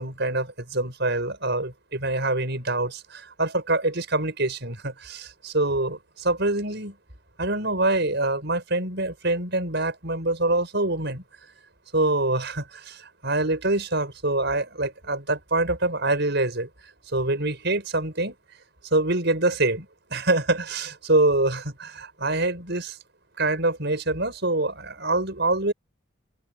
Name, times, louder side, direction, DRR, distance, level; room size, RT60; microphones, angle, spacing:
voice 1, 0.0-6.9 7.4-11.2 11.9-16.7 17.1-18.3 18.9-23.0 23.4-25.7, right 2 dB, 55° right, 6.6 m, -25 dB
open air
head